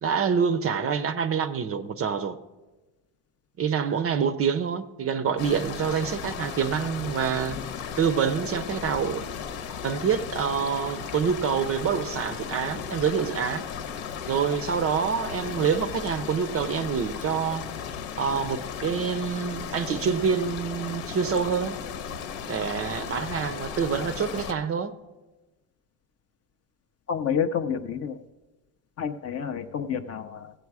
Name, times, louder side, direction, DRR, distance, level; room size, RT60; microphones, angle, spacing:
voice 1, 0.0-2.4 3.6-7.6 8.0-9.3 9.8-13.6 14.3-17.7 18.2-21.8 22.5-24.9, right 6 dB, 30° right, 0.4 m, -26 dB
sound 1, 5.4-24.5, left 7 dB, 85° left, 1.0 m, -36 dB
voice 2, 27.1-28.2 29.0-30.5, left 7 dB, 35° left, 0.4 m, -29 dB
16.0 x 7.9 x 4.7 m
cardioid pair, 140°, 47 cm